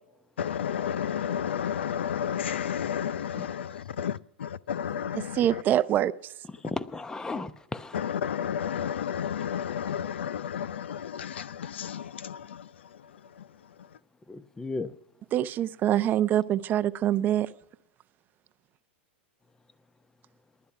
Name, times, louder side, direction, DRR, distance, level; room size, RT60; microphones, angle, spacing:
voice 1, 0.4-5.4 7.9-12.4, left 8 dB, 85° left, 0.5 m, -31 dB
voice 2, 4.9-6.3 15.3-17.5, right 11 dB, 30° right, 0.6 m, -25 dB
voice 3, 6.6-8.0 14.3-14.9, left 3 dB, 10° left, 0.8 m, -35 dB
19.5 x 11.5 x 5.8 m
hypercardioid pair, 120°, 6 cm